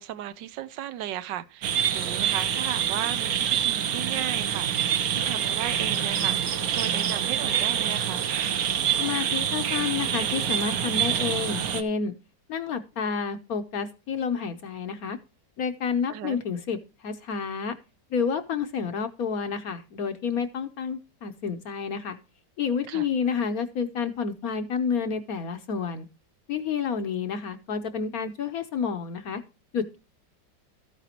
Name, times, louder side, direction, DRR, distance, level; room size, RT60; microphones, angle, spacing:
voice 1, 0.0-8.3 16.1-16.4 22.9-23.0, right 12 dB, 75° right, 1.3 m, -36 dB
sound 1, 1.6-11.8, right 9 dB, 60° right, 1.2 m, -26 dB
voice 2, 9.0-12.1 12.5-15.2 15.6-17.8 18.1-22.2 22.6-26.1 26.5-29.4 29.7-29.8, left 6 dB, 60° left, 1.1 m, -29 dB
13.5 x 9.1 x 2.9 m
omnidirectional pair, 2.0 m